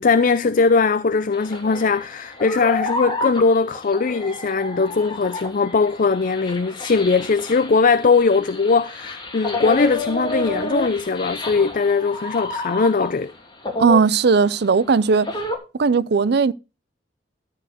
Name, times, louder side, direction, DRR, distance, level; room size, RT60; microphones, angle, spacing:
voice 1, 0.0-13.3, left 4 dB, 50° left, 0.5 m, -20 dB
sound 1, 1.3-13.3 13.6-15.6, left 2 dB, 25° left, 2.8 m, -30 dB
voice 2, 13.8-15.3 15.8-16.5, right 5 dB, 65° right, 0.5 m, -17 dB
13.5 x 4.6 x 6.5 m
head